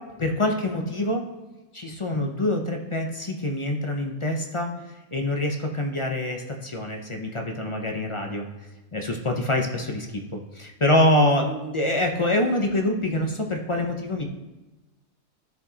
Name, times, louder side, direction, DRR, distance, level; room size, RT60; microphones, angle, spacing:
voice 1, 0.2-1.2 1.7-4.7 5.1-8.5 8.9-14.3, left 1 dB, 40° left, 2 dB, 0.4 m, -25 dB
13.0 x 4.8 x 2.8 m, 1.1 s
omnidirectional pair, 1.4 m